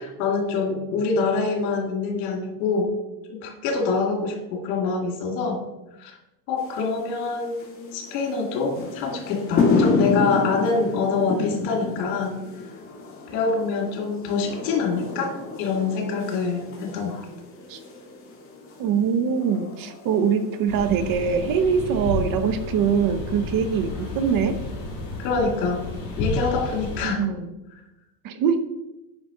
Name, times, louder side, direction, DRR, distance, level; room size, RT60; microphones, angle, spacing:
voice 1, 0.0-2.9 3.3-5.6 6.0-6.1 6.5-7.6 7.9-12.4 13.3-17.3 25.2-25.9 26.2-27.2, left 4 dB, 80° left, 2 dB, 2.3 m, -25 dB
sound 1, 6.6-25.2, left 4 dB, 25° left, 1.9 m, -31 dB
voice 2, 18.8-24.6 27.0-27.5 28.2-28.6, right 6 dB, 45° right, 10 dB, 0.8 m, -23 dB
sound 2, 20.7-27.0, left 2 dB, 45° left, 3.0 m, -32 dB
9.7 x 5.1 x 3.8 m, 0.97 s
cardioid pair, 135°, 48 cm